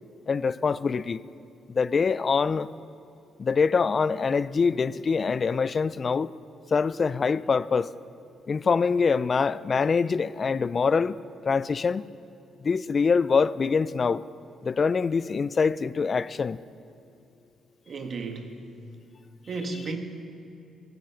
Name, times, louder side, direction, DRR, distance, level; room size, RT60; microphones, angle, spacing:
voice 1, 0.3-1.2 1.7-2.7 3.4-6.3 6.7-7.9 8.5-11.1 11.5-12.0 12.6-14.2 14.6-16.6, left 5 dB, 40° left, 0.3 m, -24 dB
voice 2, 17.9-18.6 19.5-20.0, right 3 dB, 50° right, 1.3 m, -33 dB
15.0 x 9.1 x 5.7 m
cardioid pair, 90°, 0 cm